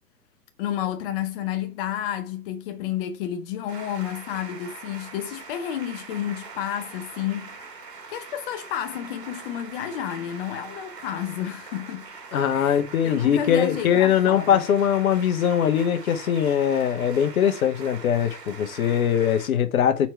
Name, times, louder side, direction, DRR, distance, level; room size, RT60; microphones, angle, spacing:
voice 1, 0.6-7.7 8.1-12.0 12.5-14.7, left 10 dB, 35° left, 0.6 m, -31 dB
sound 1, 3.7-19.5, right 4 dB, 85° right, 2.1 m, -42 dB
voice 2, 12.3-20.1, left 9 dB, 60° left, 1.1 m, -21 dB
4.6 x 4.4 x 5.5 m
hypercardioid pair, 120°, 48 cm